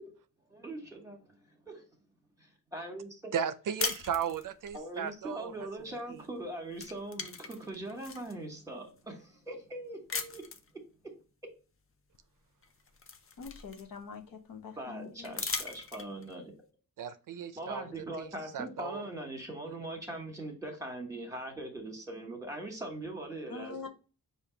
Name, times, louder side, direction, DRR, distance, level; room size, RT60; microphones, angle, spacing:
voice 1, 0.5-1.8 2.4-3.3 4.7-10.4 11.0-11.1 14.8-16.5 17.5-23.9, right 1 dB, 10° right, 1.3 m, -41 dB
voice 2, 3.3-5.5 6.1-6.2 17.0-17.9 18.2-19.0 19.7-19.8, right 8 dB, 70° right, 0.5 m, -36 dB
sound 1, 3.8-4.8 6.2-6.4 6.7-8.3 9.0-9.1 10.1-10.7 12.1-12.2 12.6-14.2 15.2-16.3, left 5 dB, 40° left, 0.5 m, -38 dB
voice 3, 13.4-15.4 23.5-23.9, left 5 dB, 85° left, 0.9 m, -44 dB
5.2 x 2.6 x 3.8 m
wide cardioid pair, 115°, 33 cm